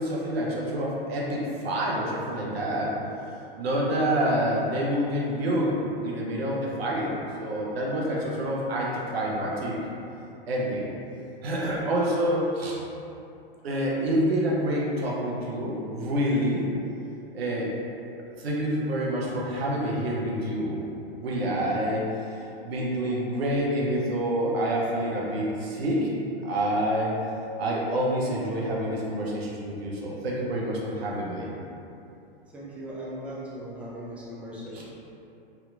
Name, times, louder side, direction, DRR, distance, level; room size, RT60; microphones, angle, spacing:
voice 1, 0.0-2.9 3.6-7.1 7.4-9.8 10.5-10.9 11.4-12.8 13.6-16.6 17.3-17.7 18.4-20.8 21.2-22.1 22.6-26.1 26.4-27.1 27.6-31.5 34.7-34.8, equal, 75° right, -4 dB, 0.9 m, -27 dB
voice 2, 32.5-34.8, equal, 5° right, -7 dB, 0.4 m, -38 dB
3.5 x 2.8 x 2.5 m, 2.8 s
hypercardioid pair, 120°, 30 cm